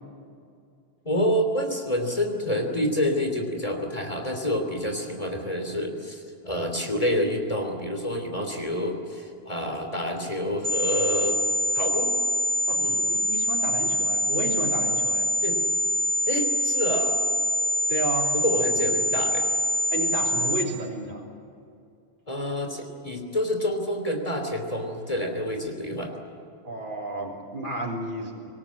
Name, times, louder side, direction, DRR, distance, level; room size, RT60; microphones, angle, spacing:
voice 1, 1.0-11.4 11.7-12.1 12.8-13.0 15.4-15.6 16.3-17.2 18.3-19.5 22.3-26.1, equal, 35° left, 3 dB, 3.2 m, -28 dB
sound 1, 10.6-20.6, equal, 75° right, 2.1 m, -25 dB
voice 2, 13.1-15.3 17.9-18.3 19.9-21.3 26.6-28.5, right 1 dB, 55° right, -3 dB, 3.9 m, -32 dB
25.5 x 19.0 x 8.8 m, 2.5 s
omnidirectional pair, 1.0 m